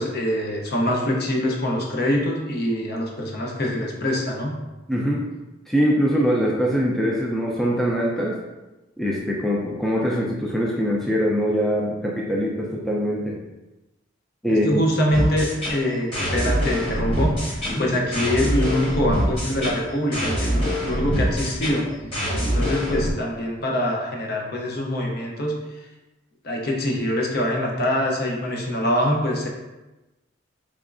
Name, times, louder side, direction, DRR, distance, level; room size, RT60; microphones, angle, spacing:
voice 1, 0.0-4.6 14.5-21.9 22.4-25.6 26.4-29.5, left 1 dB, 55° left, 0 dB, 0.6 m, -24 dB
voice 2, 4.9-5.2 5.7-8.4 9.0-13.4 14.4-14.8 17.7-17.9, equal, ahead, -3 dB, 0.3 m, -23 dB
sound 1, 15.1-23.1, equal, 30° left, 1.3 m, -25 dB
3.5 x 3.1 x 2.5 m, 1.1 s
head